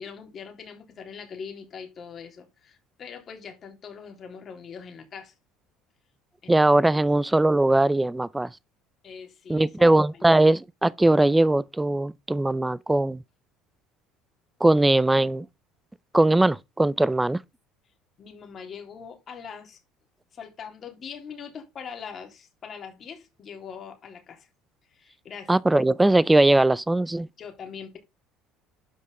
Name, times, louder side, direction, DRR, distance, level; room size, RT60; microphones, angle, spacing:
voice 1, 0.0-5.3 6.4-6.6 9.0-9.9 10.1-10.3 18.2-19.8 20.3-24.5 24.9-25.5 27.4-28.0, left 6 dB, 35° left, 3.3 m, -42 dB
voice 2, 6.5-8.5 9.5-13.2 14.6-15.5 16.1-17.4 25.5-27.3, right 2 dB, 5° right, 0.5 m, -20 dB
12.0 x 5.5 x 3.7 m
cardioid pair, 140°, 0 cm